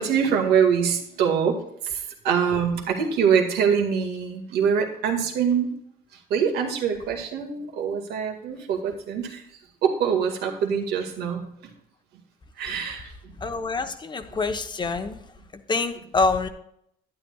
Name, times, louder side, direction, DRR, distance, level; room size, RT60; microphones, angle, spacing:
voice 1, 0.0-2.0 2.2-5.7 6.3-9.4 9.8-11.4 12.6-13.1 14.8-14.9 16.0-16.1, right 7 dB, 75° right, 3 dB, 2.0 m, -24 dB
voice 2, 13.4-15.2 15.7-16.5, left 3 dB, 25° left, 8 dB, 0.9 m, -26 dB
11.5 x 9.7 x 2.4 m, 0.72 s
cardioid pair, 110°, 17 cm